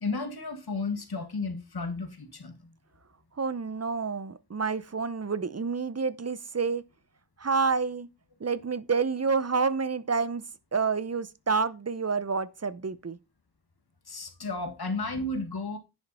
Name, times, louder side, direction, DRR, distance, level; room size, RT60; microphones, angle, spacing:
voice 1, 0.0-2.7 14.1-15.8, left 3 dB, 65° left, 1.8 m, -33 dB
voice 2, 3.4-6.8 7.4-8.1 8.4-10.4 10.7-13.2, right 5 dB, 40° right, 0.7 m, -28 dB
10.5 x 5.4 x 4.2 m
wide cardioid pair, 60°, 40 cm